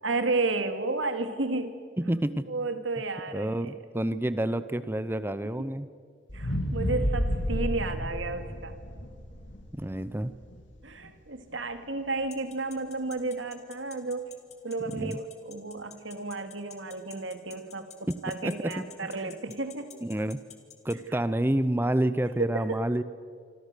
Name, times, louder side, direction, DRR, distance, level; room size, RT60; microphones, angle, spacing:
voice 1, 0.0-1.8 2.5-3.7 5.6-5.7 6.3-8.7 10.8-14.3 14.6-20.0 22.4-22.8, right 3 dB, 75° right, 8 dB, 2.2 m, -32 dB
voice 2, 2.0-2.5 3.3-5.9 9.7-10.3 15.0-15.2 18.1-19.4 20.0-20.4 20.8-23.0, right 1 dB, 10° right, 14 dB, 0.7 m, -29 dB
sound 1, 6.3-10.5 11.0-11.1, equal, 70° left, 3.1 m, -31 dB
sound 2, 12.3-20.9, left 9 dB, 35° left, 2.9 m, -48 dB
27.0 x 26.0 x 6.8 m, 2.2 s
head